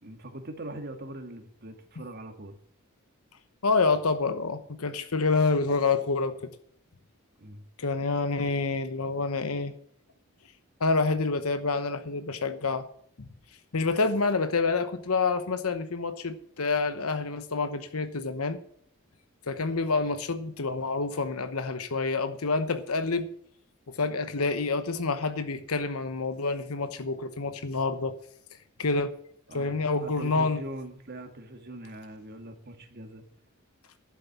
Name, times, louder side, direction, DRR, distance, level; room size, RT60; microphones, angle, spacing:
voice 1, 0.0-2.6 7.4-7.6 29.5-33.2, right 1 dB, 50° right, 1.8 m, -42 dB
voice 2, 3.6-6.4 7.8-9.7 10.8-12.8 13.2-13.3 13.7-18.6 19.5-23.3 23.9-28.1 28.8-29.1 29.5-30.6, left 4 dB, 85° left, 1.0 m, -27 dB
11.5 x 7.6 x 7.0 m
head